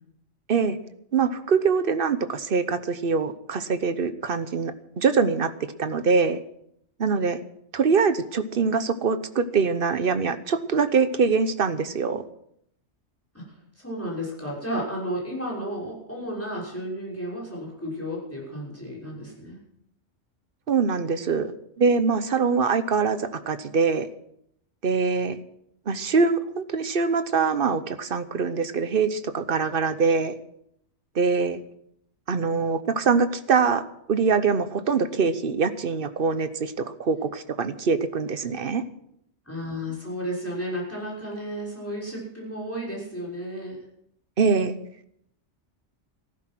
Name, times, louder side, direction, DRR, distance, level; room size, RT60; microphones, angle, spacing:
voice 1, 1.1-5.5 5.8-6.4 7.0-7.4 7.7-12.2 20.7-21.5 21.8-24.1 24.8-25.4 25.9-30.3 31.1-31.6 32.3-38.8 44.4-44.7, right 5 dB, 55° right, 12 dB, 1.0 m, -23 dB
voice 2, 13.8-19.6 39.5-43.8, equal, 10° left, -4 dB, 6.0 m, -33 dB
14.5 x 12.5 x 6.1 m, 0.73 s
omnidirectional pair, 1.2 m